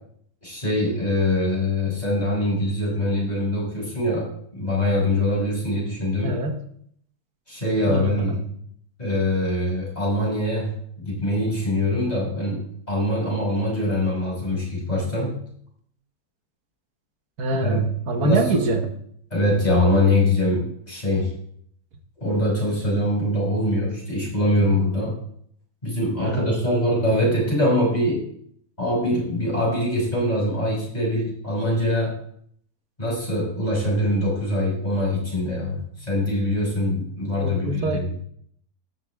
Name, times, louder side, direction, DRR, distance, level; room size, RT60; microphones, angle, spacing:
voice 1, 0.4-6.4 7.5-8.4 9.0-15.4 17.6-17.8 18.2-18.6 19.3-21.3 22.2-25.2 25.8-28.2 28.8-32.1 33.0-35.8 36.1-38.1, left 1 dB, 25° left, -4 dB, 5.7 m, -23 dB
voice 2, 6.2-6.6 7.9-8.4 17.4-18.9 26.2-26.6 37.4-38.1, right 2 dB, 75° right, 5 dB, 1.7 m, -25 dB
13.5 x 10.5 x 3.5 m, 0.66 s
omnidirectional pair, 1.6 m